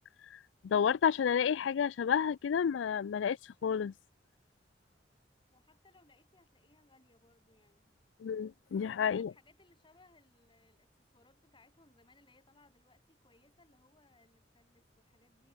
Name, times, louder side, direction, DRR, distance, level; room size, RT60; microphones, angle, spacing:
voice 1, 0.6-3.4 3.6-3.9 8.2-9.3, left 7 dB, 80° left, 0.4 m, -30 dB
voice 2, 5.5-7.9 8.8-15.5, left 2 dB, 25° left, 7.3 m, -66 dB
head